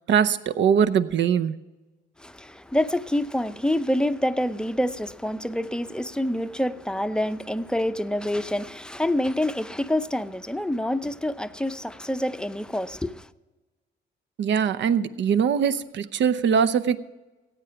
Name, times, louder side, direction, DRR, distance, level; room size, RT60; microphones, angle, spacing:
voice 1, 0.1-1.5 14.4-17.0, right 7 dB, 65° right, 0.7 m, -22 dB
voice 2, 2.2-13.3, left 1 dB, 5° left, 0.6 m, -27 dB
16.0 x 8.9 x 5.8 m
cardioid pair, 90°, 20 cm